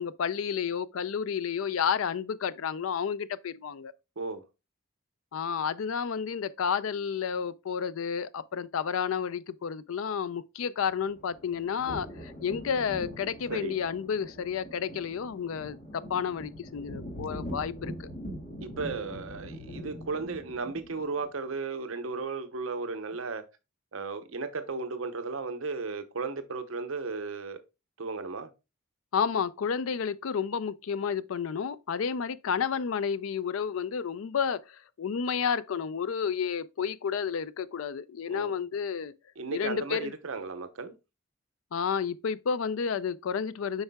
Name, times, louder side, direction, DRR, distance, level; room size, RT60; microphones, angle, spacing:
voice 1, 0.0-3.9 5.3-18.1 29.1-39.1 39.5-40.1 41.7-43.8, left 7 dB, 75° left, 0.4 m, -31 dB
sound 1, 10.9-21.2, equal, 35° left, 1.7 m, -42 dB
voice 2, 18.6-23.4 23.9-27.6 28.0-28.5 38.3-38.5 39.4-40.9, right 4 dB, 75° right, 0.8 m, -35 dB
8.0 x 5.5 x 2.2 m
head